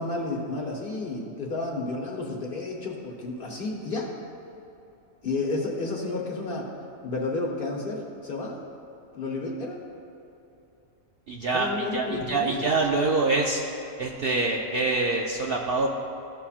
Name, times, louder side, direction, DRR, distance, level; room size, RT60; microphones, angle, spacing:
voice 1, 0.0-4.1 5.2-6.7 7.0-8.6 9.1-9.8 11.5-12.7, left 3 dB, 45° left, -1 dB, 1.0 m, -31 dB
voice 2, 11.3-13.6 14.0-15.9, right 3 dB, 60° right, 0 dB, 0.6 m, -25 dB
14.0 x 5.6 x 2.4 m, 2.9 s
omnidirectional pair, 1.4 m